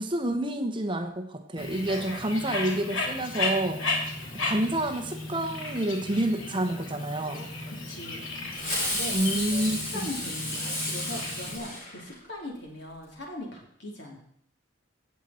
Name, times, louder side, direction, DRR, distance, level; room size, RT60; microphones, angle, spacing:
voice 1, 0.0-3.8 4.3-7.5 9.1-9.8, right 1 dB, 25° right, 6 dB, 1.0 m, -28 dB
Bird, 1.6-11.6, left 2 dB, 90° left, 2.8 m, -34 dB
voice 2, 7.7-8.3 8.8-14.2, left 1 dB, 65° left, -1 dB, 3.5 m, -40 dB
Fireworks, 8.5-12.4, left 1 dB, 40° left, 5.9 m, -32 dB
17.0 x 7.6 x 4.4 m, 0.66 s
head